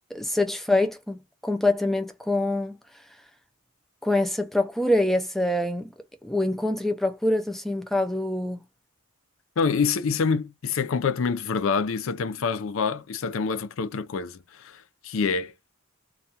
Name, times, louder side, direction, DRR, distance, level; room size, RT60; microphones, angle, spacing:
voice 1, 0.1-2.8 4.0-5.9 6.2-8.6, left 1 dB, ahead, 0.3 m, -25 dB
voice 2, 9.6-15.5, left 5 dB, 65° left, 0.4 m, -26 dB
2.3 x 2.2 x 2.8 m
head